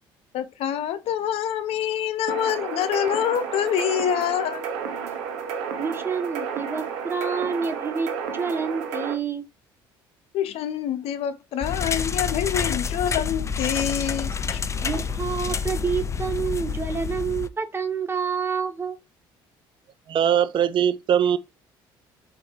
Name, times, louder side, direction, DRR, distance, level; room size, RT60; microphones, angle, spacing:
voice 1, 0.3-4.6 10.3-14.6, left 10 dB, 65° left, 0.7 m, -26 dB
sound 1, 2.3-9.1, right 6 dB, 80° right, 0.8 m, -31 dB
voice 2, 5.8-9.4 14.8-19.0, right 5 dB, 20° right, 1.0 m, -28 dB
sound 2, 11.6-17.5, left 6 dB, 25° left, 0.4 m, -28 dB
voice 3, 20.1-21.4, right 9 dB, 50° right, 0.5 m, -21 dB
4.2 x 2.7 x 3.6 m
hypercardioid pair, 65°, 11 cm